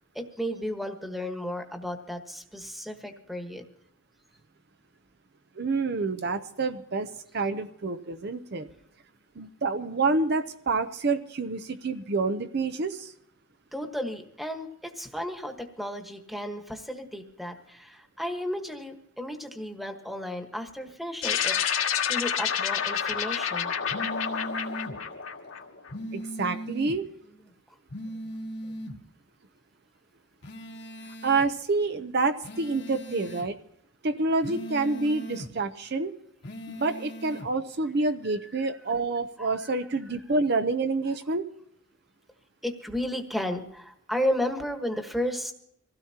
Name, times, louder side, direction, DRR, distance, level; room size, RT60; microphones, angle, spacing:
voice 1, 0.1-3.6 13.7-23.7 39.4-39.5 42.6-45.5, equal, ahead, 4 dB, 1.3 m, -33 dB
voice 2, 5.6-8.7 9.4-13.1 26.1-27.0 31.2-33.6 34.0-36.1 36.7-41.5, right 3 dB, 50° right, 8 dB, 0.7 m, -28 dB
sound 1, 21.2-25.9, left 8 dB, 85° left, 2.3 m, -29 dB
sound 2, 23.9-25.0 25.9-27.0 27.9-29.0 30.4-31.5 32.4-33.5 34.4-35.5 36.4-37.5, right 1 dB, 55° left, 1.3 m, -38 dB
24.5 x 16.5 x 2.9 m, 0.72 s
head